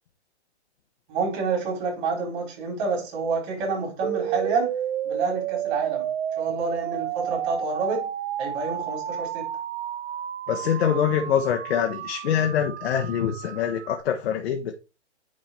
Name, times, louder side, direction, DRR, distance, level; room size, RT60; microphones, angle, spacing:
voice 1, 1.1-4.7 5.0-6.1 6.4-8.1 8.4-9.5, right 4 dB, 40° right, 4.1 m, -28 dB
sound 1, 4.0-14.0, right 10 dB, 60° right, 0.7 m, -31 dB
voice 2, 10.5-14.7, left 8 dB, 60° left, 1.2 m, -24 dB
9.5 x 3.9 x 4.3 m
hypercardioid pair, 140°, 35 cm